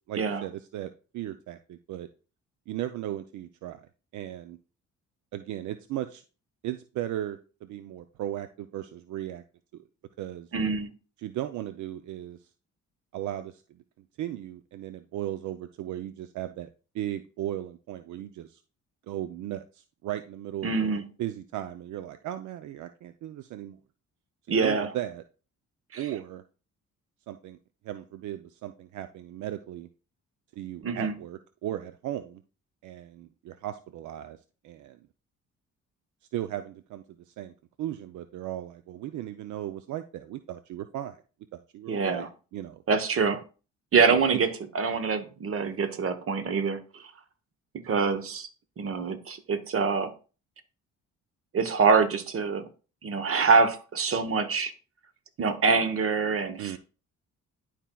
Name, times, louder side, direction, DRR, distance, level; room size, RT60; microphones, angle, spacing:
voice 1, 0.1-2.1 2.7-3.8 4.1-4.6 5.3-6.2 6.6-9.4 9.7-9.8 10.2-10.5 11.2-12.5 13.1-13.8 14.2-16.7 16.9-18.6 19.1-23.8 24.5-25.2 26.0-26.4 27.3-27.6 27.8-29.9 30.6-32.4 32.8-34.4 34.6-35.0 36.3-37.5 37.8-41.2 41.5-42.3 42.5-42.8 44.0-44.2 56.6-56.8, right 12 dB, 75° right, 0.5 m, -36 dB
voice 2, 10.5-10.9 20.6-21.0 24.5-24.9 25.9-26.1 30.8-31.1 41.9-42.3 42.9-43.4 43.9-44.5 44.7-47.0 47.7-48.5 48.8-50.1 51.5-52.7 53.0-54.7 55.4-56.8, right 5 dB, 45° right, 1.0 m, -25 dB
11.0 x 4.4 x 2.3 m
cardioid pair, 90°, 30 cm